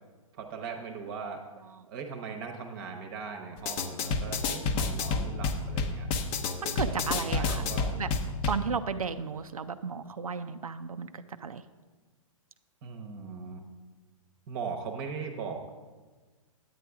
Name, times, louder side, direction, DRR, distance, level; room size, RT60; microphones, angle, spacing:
voice 1, 0.4-1.4 1.9-6.1 6.8-8.0 12.8-13.6 14.5-15.7, right 5 dB, 40° right, 4 dB, 0.9 m, -39 dB
sound 1, 3.6-8.6, left 4 dB, 30° left, 0.7 m, -30 dB
voice 2, 6.6-7.7 8.0-8.1 8.5-11.6, right 6 dB, 85° right, 10 dB, 0.4 m, -34 dB
9.2 x 8.5 x 3.5 m, 1.4 s
hypercardioid pair, 120°, 18 cm